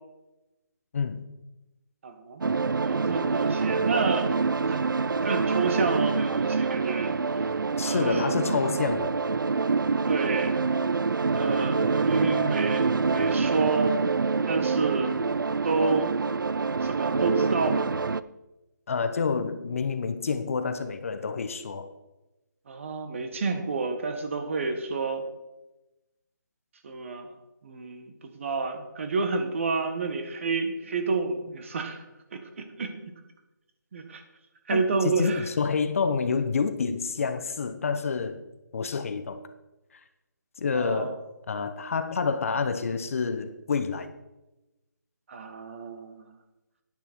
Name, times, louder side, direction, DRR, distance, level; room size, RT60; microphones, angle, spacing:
voice 1, 0.9-1.2 7.8-9.1 18.9-21.9 34.7-38.4 38.7-39.4 40.6-41.2 41.5-44.1, left 5 dB, 45° left, 0.8 m, -28 dB
voice 2, 2.0-2.4 2.8-4.3 4.7-4.9 5.2-7.5 7.8-8.3 10.1-10.6 11.3-14.0 14.5-15.2 15.6-16.1 16.8-17.8 22.7-25.2 26.8-27.3 27.6-32.0 32.3-33.1 33.9-34.2 34.7-35.5 40.7-41.1 45.3-46.3, right 4 dB, 40° right, 1.5 m, -29 dB
sound 1, 2.4-18.2, right 4 dB, 85° right, 0.5 m, -26 dB
10.5 x 10.0 x 4.5 m
figure-of-eight pair, 160°, 11 cm